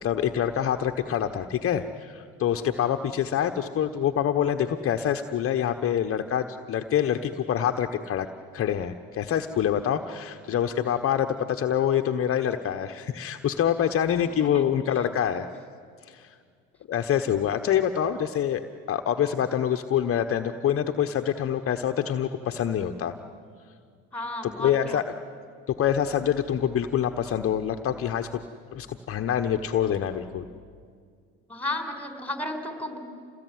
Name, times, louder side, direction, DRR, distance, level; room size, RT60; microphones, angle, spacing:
voice 1, 0.0-8.3 8.5-15.5 16.1-16.3 16.9-23.1 24.6-25.0 25.8-28.4 28.7-30.4, left 9 dB, 45° left, 6 dB, 1.1 m, -26 dB
voice 2, 14.3-14.6 24.1-25.0 31.5-33.0, left 1 dB, 5° left, 6 dB, 4.7 m, -33 dB
27.5 x 19.5 x 9.5 m, 2.1 s
hypercardioid pair, 75°, 31 cm